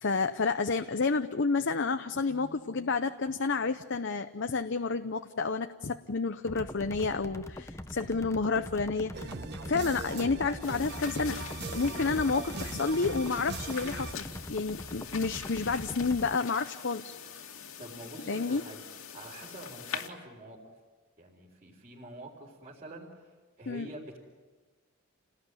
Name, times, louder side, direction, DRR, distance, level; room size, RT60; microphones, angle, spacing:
voice 1, 0.0-9.3 9.6-11.4 11.7-17.2 18.3-18.6 23.7-23.9, left 4 dB, 55° left, 8 dB, 0.7 m, -30 dB
sound 1, 6.5-16.4, left 1 dB, 15° left, 0.7 m, -43 dB
sound 2, 9.1-14.1, right 3 dB, 50° right, 1.0 m, -40 dB
sound 3, 10.6-20.1, left 7 dB, 70° left, 2.5 m, -44 dB
voice 2, 17.8-18.8 19.1-20.6 21.2-24.2, right 1 dB, 30° right, -5 dB, 4.2 m, -46 dB
29.5 x 19.0 x 9.8 m, 1.4 s
head